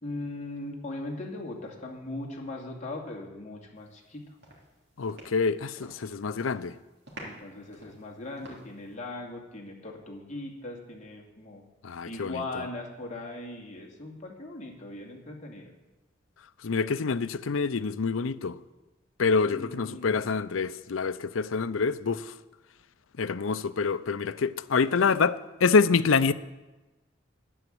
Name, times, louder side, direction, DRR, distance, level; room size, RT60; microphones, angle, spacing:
voice 1, 0.0-4.4 7.2-11.6 12.1-15.7 19.5-20.2, left 2 dB, 35° left, 2.4 m, -39 dB
sound 1, 3.9-4.1 4.4-6.1 6.3-6.7 7.1-8.9, right 1 dB, 55° right, 3.4 m, -48 dB
voice 2, 5.0-6.8 11.8-12.4 16.6-18.6 19.2-22.4 23.2-26.3, left 5 dB, 90° left, 0.6 m, -26 dB
11.0 x 10.0 x 7.8 m
head